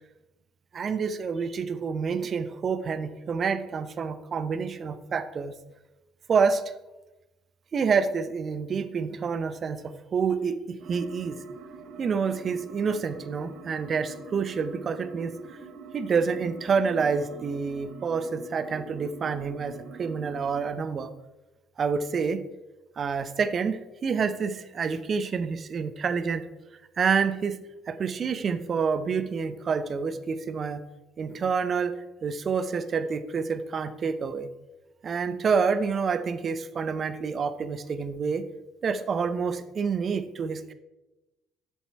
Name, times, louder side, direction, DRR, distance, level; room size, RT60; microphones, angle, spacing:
voice 1, 0.7-5.5 6.3-6.6 7.7-11.4 12.0-15.4 15.9-21.1 21.8-22.4 23.0-26.4 27.0-27.6 27.9-30.8 31.2-31.9 32.2-34.5 35.0-38.4 38.8-40.7, right 5 dB, 45° right, 12 dB, 0.7 m, -28 dB
sound 1, 10.8-20.7, right 4 dB, 60° right, 1.1 m, -45 dB
7.2 x 7.1 x 4.4 m, 1.0 s
figure-of-eight pair, 50°, 0 cm